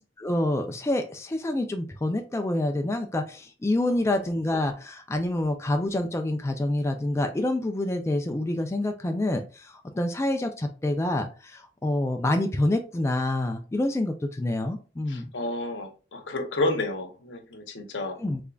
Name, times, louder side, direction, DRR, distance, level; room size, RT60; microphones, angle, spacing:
voice 1, 0.2-15.2 18.2-18.4, left 1 dB, 15° left, 5 dB, 0.3 m, -27 dB
voice 2, 15.1-18.2, left 2 dB, 75° left, 5 dB, 0.8 m, -30 dB
3.6 x 3.2 x 2.3 m, 0.35 s
head